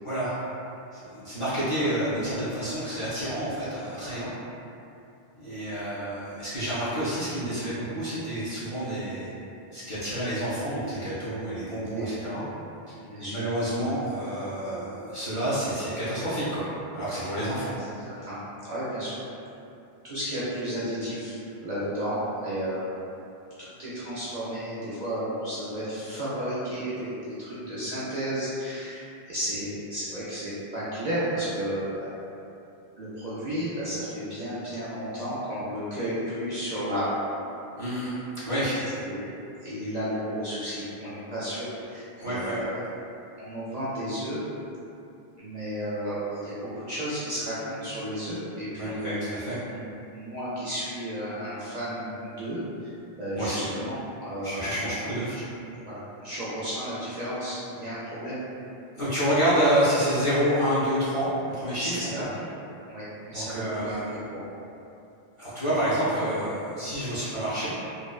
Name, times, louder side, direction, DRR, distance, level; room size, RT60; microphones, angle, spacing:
voice 1, 0.0-0.3 0.9-4.3 5.3-9.3 9.7-12.4 13.2-17.7 37.8-38.2 38.4-38.8 42.2-42.6 48.8-49.6 53.4-53.6 54.4-55.4 59.0-62.2 63.3-64.2 65.4-67.7, right 1 dB, 40° left, -12 dB, 0.5 m, -28 dB
voice 2, 13.0-13.4 17.6-18.4 18.6-19.2 20.0-22.9 23.8-32.1 33.0-37.1 39.0-39.3 39.6-42.7 43.4-44.4 45.4-49.1 49.7-49.8 50.1-54.7 55.8-58.4 61.8-62.3 62.8-64.5, equal, 55° right, -11 dB, 0.5 m, -33 dB
2.6 x 2.0 x 2.3 m, 2.7 s
omnidirectional pair, 1.0 m